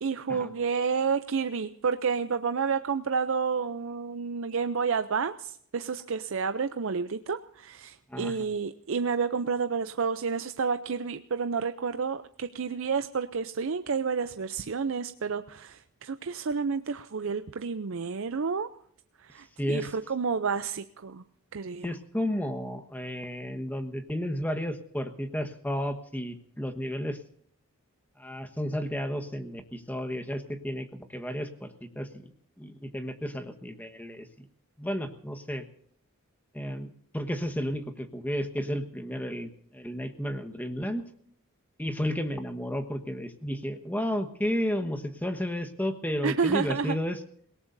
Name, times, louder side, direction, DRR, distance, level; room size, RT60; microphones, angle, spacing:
voice 1, 0.0-18.7 19.2-21.2 21.5-21.9 46.2-47.0, right 5 dB, 60° right, 10 dB, 0.5 m, -30 dB
voice 2, 19.6-19.9 21.8-27.2 28.2-32.3 32.6-34.5 34.8-35.6 36.5-41.0 41.8-47.2, equal, 10° left, 7 dB, 1.2 m, -32 dB
28.0 x 18.0 x 2.6 m, 0.64 s
head